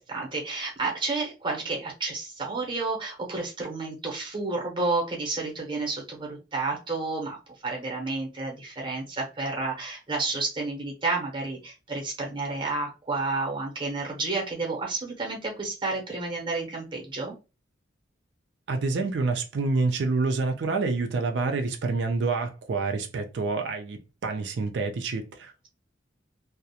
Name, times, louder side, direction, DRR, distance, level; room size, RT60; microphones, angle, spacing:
voice 1, 0.1-7.4 7.6-17.3, right 3 dB, 25° right, 0.7 m, -31 dB
voice 2, 18.7-25.7, right 3 dB, 70° right, 0.4 m, -27 dB
2.3 x 2.0 x 2.7 m
head